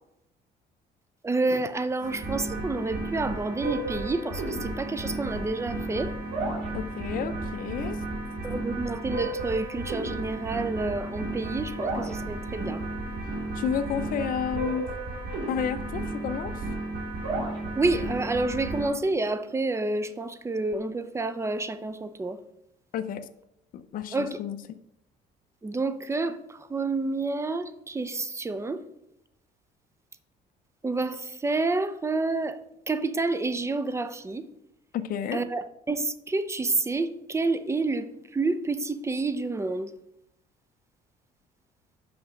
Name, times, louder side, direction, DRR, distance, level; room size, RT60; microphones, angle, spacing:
voice 1, 1.2-6.1 8.4-12.8 17.7-22.4 24.1-24.4 25.6-28.8 30.8-32.6 32.9-34.5 35.3-39.9, right 3 dB, 15° right, 0.6 m, -29 dB
sound 1, 2.0-18.8, right 2 dB, 70° right, 2.5 m, -33 dB
voice 2, 6.7-8.0 13.5-14.8 15.5-16.6 22.9-23.3 23.7-24.6 34.9-35.4, left 8 dB, 55° left, 0.5 m, -31 dB
6.0 x 5.2 x 6.4 m
cardioid pair, 110°, 17 cm